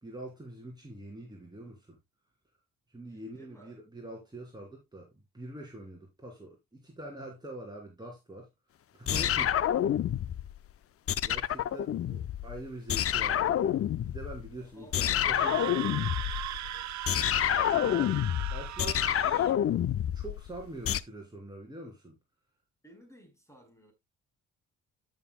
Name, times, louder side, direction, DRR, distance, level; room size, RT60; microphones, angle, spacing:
voice 1, 0.0-2.0 2.9-8.5 8.9-9.6 11.2-13.8 14.1-16.1 17.7-18.1 18.4-19.5 20.1-22.2, right 1 dB, 15° right, 2.9 m, -44 dB
voice 2, 3.1-3.8 9.4-9.7 14.5-16.9 22.8-23.9, right 1 dB, 10° left, 4.1 m, -57 dB
sound 1, 9.1-10.6 11.1-12.6 12.9-14.5 14.9-21.0, left 11 dB, 50° left, 0.6 m, -28 dB
Screaming, 15.2-19.5, right 13 dB, 65° right, 0.7 m, -38 dB
13.5 x 6.5 x 2.2 m
cardioid pair, 90°, 30 cm